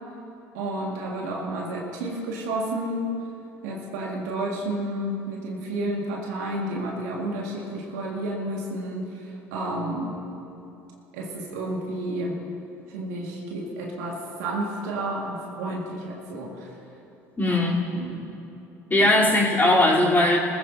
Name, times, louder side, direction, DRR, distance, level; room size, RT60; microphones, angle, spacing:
voice 1, 0.5-3.2 3.6-10.2 11.1-12.4 12.9-16.8 17.5-18.3, right 1 dB, 75° right, -1 dB, 2.0 m, -31 dB
voice 2, 17.4-17.8 18.9-20.4, left 1 dB, 20° left, -6 dB, 3.7 m, -19 dB
20.0 x 14.5 x 2.8 m, 2.9 s
hypercardioid pair, 65°, 9 cm